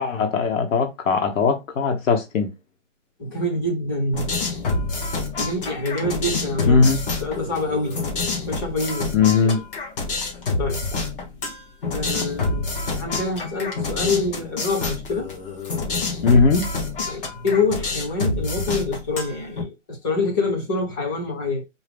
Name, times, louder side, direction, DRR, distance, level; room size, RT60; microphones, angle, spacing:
voice 1, 0.0-2.5 6.7-7.0 9.1-9.6 16.2-16.7, left 5 dB, 85° left, 1.2 m, -19 dB
voice 2, 3.2-4.3 5.4-6.9 7.2-9.1 9.4-9.5 10.6-10.8 11.9-15.3 17.1-21.6, left 2 dB, 15° left, 0.7 m, -26 dB
sound 1, 4.1-19.6, left 3 dB, 45° left, 1.4 m, -27 dB
4.6 x 2.2 x 3.5 m
hypercardioid pair, 170°, 38 cm